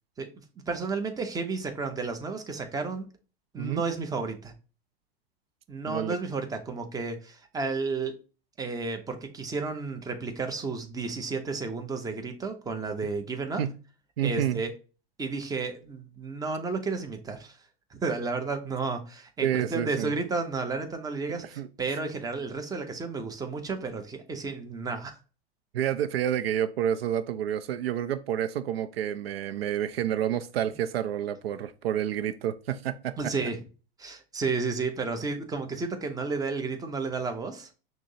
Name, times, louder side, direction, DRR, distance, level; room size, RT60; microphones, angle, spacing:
voice 1, 0.7-3.1 3.5-4.5 5.7-8.1 8.6-13.6 14.2-14.7 15.2-17.6 17.9-25.1 33.2-33.6 34.0-37.7, right 4 dB, 10° right, 0.7 m, -32 dB
voice 2, 14.2-14.6 19.4-20.1 21.6-21.7 25.7-33.2, right 10 dB, 80° right, 0.5 m, -29 dB
6.0 x 2.1 x 2.7 m
hypercardioid pair, 100°, 30 cm